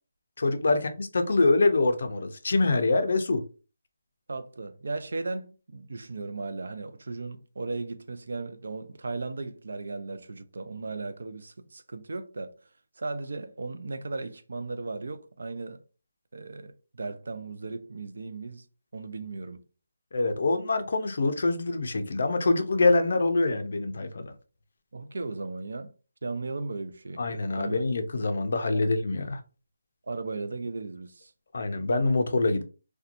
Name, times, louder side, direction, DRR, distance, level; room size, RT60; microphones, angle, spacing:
voice 1, 0.4-3.4 20.1-24.3 27.2-29.4 31.5-32.6, left 3 dB, 50° left, 0.4 m, -25 dB
voice 2, 4.3-12.5 13.0-15.8 16.3-18.7 18.9-19.6 24.9-25.9 26.2-27.2 27.6-27.8 30.1-31.3, right 3 dB, 60° right, 0.4 m, -36 dB
2.8 x 2.2 x 2.5 m
hypercardioid pair, 175°, 0 cm